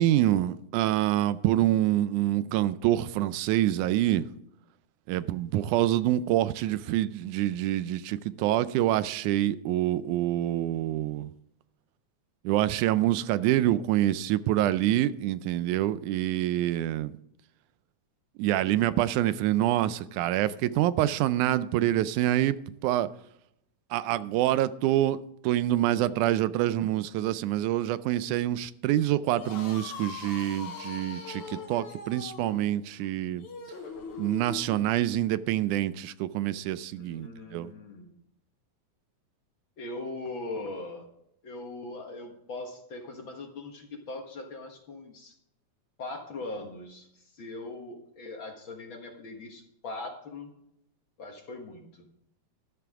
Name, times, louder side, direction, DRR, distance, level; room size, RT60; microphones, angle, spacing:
voice 1, 0.0-4.3 5.1-11.3 12.4-17.1 18.4-23.1 23.9-33.5 34.2-37.7, right 13 dB, 90° right, 2.1 m, -26 dB
sound 1, 29.3-34.9, left 5 dB, 70° left, 3.3 m, -41 dB
voice 2, 36.9-38.1 39.8-41.1 41.4-45.3 46.0-47.1 47.3-50.5 51.2-52.1, left 2 dB, 50° left, 1.9 m, -40 dB
13.0 x 12.0 x 3.6 m
omnidirectional pair, 3.4 m